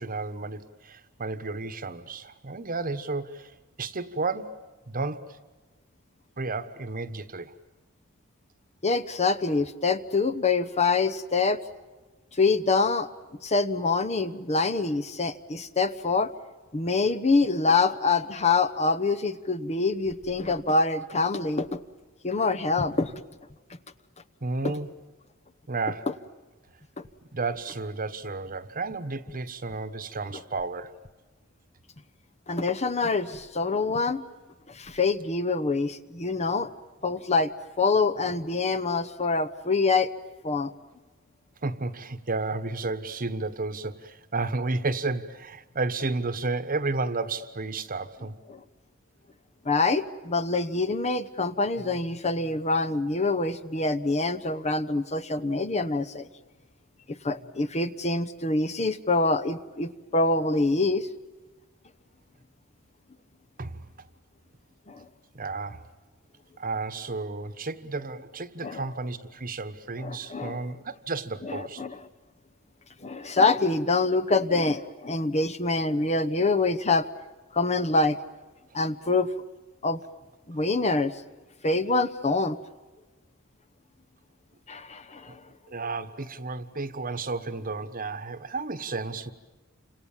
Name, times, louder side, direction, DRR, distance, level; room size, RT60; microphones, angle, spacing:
voice 1, 0.0-3.5 3.8-5.4 6.4-7.5 24.4-24.9 25.7-26.1 27.3-30.9 41.6-48.4 63.6-63.8 65.3-65.8 66.6-71.8 85.3-85.4 85.7-89.3, right 3 dB, 40° right, 1.2 m, -32 dB
voice 2, 8.8-11.6 12.3-13.1 13.4-16.3 16.7-21.8 22.2-23.2 27.0-27.1 32.5-34.2 34.7-36.7 37.0-37.5 37.8-40.1 40.4-40.7 48.5-48.6 49.6-56.3 57.1-61.1 64.9-65.0 68.6-68.8 70.0-70.6 71.4-72.0 73.0-77.1 77.5-78.2 78.7-79.3 79.8-80.0 80.5-81.1 81.6-82.6 84.7-85.4, left 3 dB, 30° left, 1.0 m, -25 dB
29.5 x 26.5 x 7.4 m
head